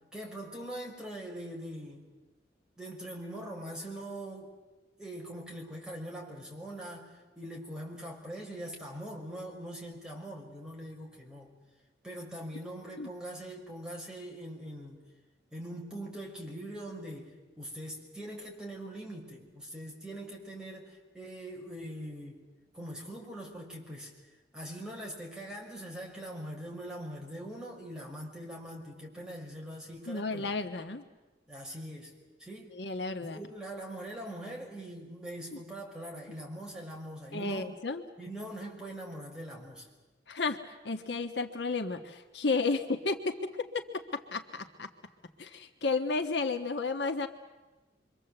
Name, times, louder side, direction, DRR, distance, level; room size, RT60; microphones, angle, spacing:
voice 1, 0.1-2.1 2.8-4.5 5.0-11.5 12.0-15.0 15.5-22.4 22.7-24.1 24.5-30.5 31.5-32.1 32.4-32.7 33.2-37.7 38.2-39.9, right 1 dB, 5° right, -2 dB, 5.8 m, -42 dB
voice 2, 30.1-31.0 32.7-33.4 35.5-35.6 37.3-38.0 40.3-40.6 40.8-44.9 45.4-47.3, left 3 dB, 65° left, 6 dB, 1.4 m, -32 dB
27.5 x 24.5 x 8.0 m, 1.2 s
head